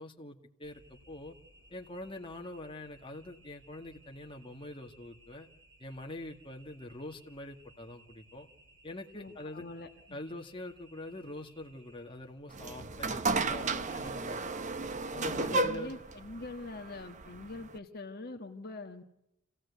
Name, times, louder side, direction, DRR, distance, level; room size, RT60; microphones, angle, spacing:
voice 1, 0.0-1.4 1.7-5.5 5.8-8.5 8.8-9.6 10.1-14.4 15.1-15.9, left 1 dB, 25° left, 2 dB, 2.0 m, -44 dB
sound 1, 0.6-13.5, right 1 dB, 55° right, 6.9 m, -61 dB
voice 2, 9.1-10.2 15.5-19.0, left 2 dB, 45° left, 4 dB, 1.5 m, -44 dB
sound 2, 12.5-17.8, right 3 dB, 35° right, 0.9 m, -33 dB
27.0 x 17.0 x 8.4 m, 0.87 s
head